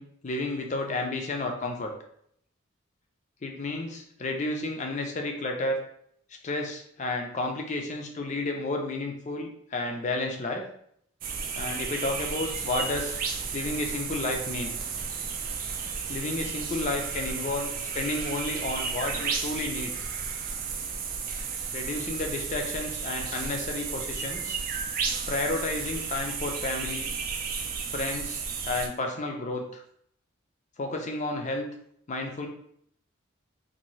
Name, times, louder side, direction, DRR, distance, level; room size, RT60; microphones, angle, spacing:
voice 1, 0.0-1.9 3.4-5.8 6.4-10.6 11.6-13.2 13.5-14.8 16.1-17.7 17.9-19.9 21.7-24.6 25.3-27.1 27.9-29.8 30.8-31.7 32.1-32.5, left 2 dB, 35° left, 2 dB, 0.4 m, -31 dB
sound 1, 11.2-28.9, right 5 dB, 40° right, 0.3 m, -33 dB
2.7 x 2.6 x 3.0 m, 0.69 s
head